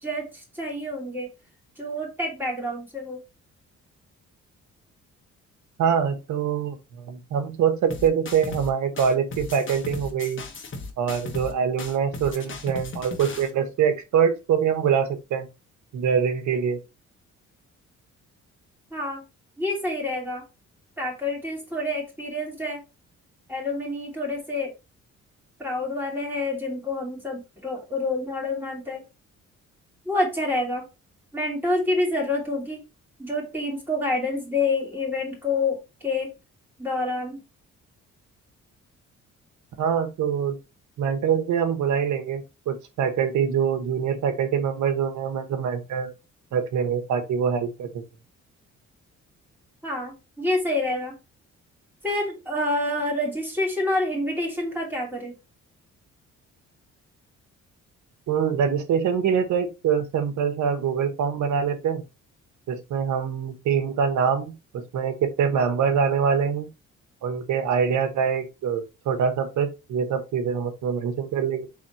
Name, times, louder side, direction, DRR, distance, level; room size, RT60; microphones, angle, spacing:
voice 1, 0.0-1.3 1.8-3.2 18.9-19.2 19.6-20.4 21.0-22.8 23.5-24.7 25.6-29.0 30.0-30.8 31.3-32.8 33.2-36.3 36.8-37.4 49.8-51.1 52.0-55.3, left 2 dB, 5° right, 2.8 m, -27 dB
voice 2, 5.8-10.4 11.0-15.5 15.9-16.8 39.8-40.6 41.0-46.1 46.5-48.0 58.3-62.0 62.7-66.7 67.2-71.7, right 7 dB, 75° right, 1.1 m, -24 dB
sound 1, 7.9-8.7 9.0-11.5 11.8-13.5, left 3 dB, 40° left, 1.2 m, -36 dB
4.1 x 3.6 x 3.0 m
cardioid pair, 90°, 30 cm